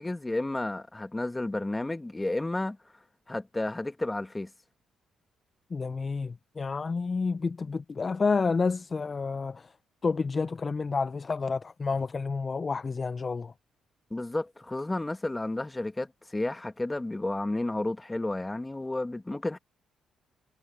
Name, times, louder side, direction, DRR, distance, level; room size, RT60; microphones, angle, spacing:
voice 1, 0.0-2.8 3.3-4.5 14.1-19.6, left 2 dB, 15° left, 1.6 m, -32 dB
voice 2, 5.7-9.7 10.0-13.5, left 4 dB, 35° left, 0.5 m, -29 dB
cardioid pair, 90°, 0 cm